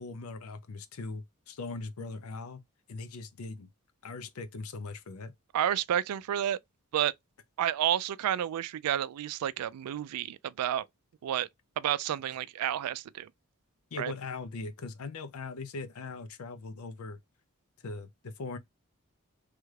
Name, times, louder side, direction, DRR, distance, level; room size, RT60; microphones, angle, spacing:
voice 1, 0.0-2.6 2.9-3.7 4.0-5.3 13.9-17.2 17.8-18.6, left 3 dB, 70° left, 0.5 m, -40 dB
voice 2, 5.5-6.6 6.9-7.1 7.6-10.9 11.2-11.5 11.8-13.3 14.0-14.1, right 10 dB, 85° right, 0.3 m, -30 dB
3.2 x 2.4 x 3.1 m
head